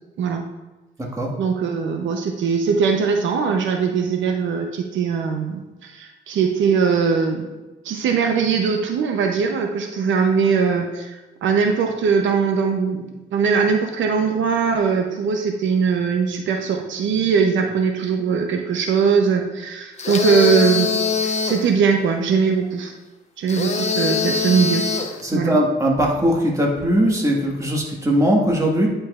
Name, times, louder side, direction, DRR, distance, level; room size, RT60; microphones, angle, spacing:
voice 1, 1.4-7.5 7.8-22.9 23.4-24.8 25.3-25.6, right 5 dB, 75° right, 4 dB, 0.7 m, -21 dB
sound 1, 20.0-21.7 23.5-25.2, left 5 dB, 35° left, 0.9 m, -22 dB
voice 2, 25.2-28.9, equal, 15° right, -1 dB, 1.6 m, -19 dB
10.0 x 5.1 x 2.5 m, 1.1 s
cardioid pair, 90°, 20 cm